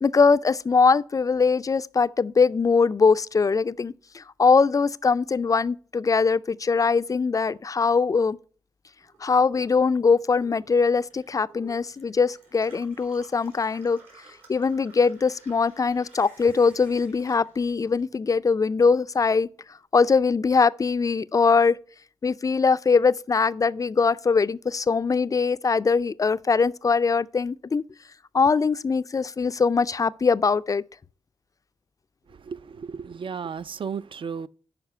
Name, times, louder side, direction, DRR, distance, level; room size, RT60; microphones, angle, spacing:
voice 1, 0.0-8.4 9.2-14.0 14.5-19.5 19.9-21.8 22.2-27.8 28.3-30.8, left 5 dB, 30° left, 0.4 m, -22 dB
Gurgling / Water tap faucet / Sink (filling or washing), 9.0-18.5 18.8-19.7, right 2 dB, 75° right, 3.2 m, -54 dB
voice 2, 32.3-34.5, right 6 dB, 50° right, 0.4 m, -34 dB
6.7 x 4.8 x 5.5 m
cardioid pair, 50°, 11 cm